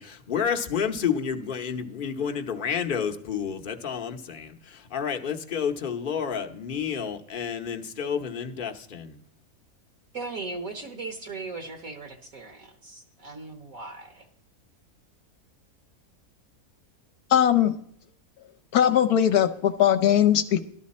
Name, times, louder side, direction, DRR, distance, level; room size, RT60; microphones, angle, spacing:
voice 1, 0.0-9.2, left 7 dB, 40° left, 0.9 m, -30 dB
voice 2, 10.1-14.3, right 3 dB, 60° right, 1.6 m, -38 dB
voice 3, 17.3-17.7 18.7-20.6, left 10 dB, 75° left, 1.2 m, -20 dB
13.5 x 11.5 x 4.2 m
omnidirectional pair, 1.7 m